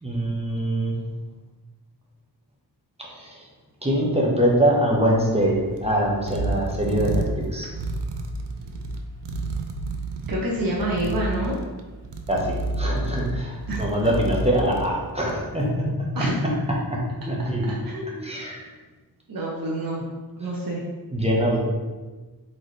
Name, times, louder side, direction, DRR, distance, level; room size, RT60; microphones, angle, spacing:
voice 1, 0.0-0.9 3.0-3.4 3.8-7.7 12.3-16.2 16.9-17.8 18.2-18.7 21.1-21.6, equal, 15° right, -4 dB, 1.0 m, -23 dB
sound 1, 5.0-15.6, right 2 dB, 85° right, 0.5 m, -31 dB
voice 2, 10.3-11.6 13.7-13.8 16.1-16.6 17.7-18.4 19.3-20.1 20.4-20.8, right 1 dB, 60° right, -4 dB, 0.8 m, -28 dB
4.2 x 3.9 x 3.2 m, 1.3 s
wide cardioid pair, 65°, 41 cm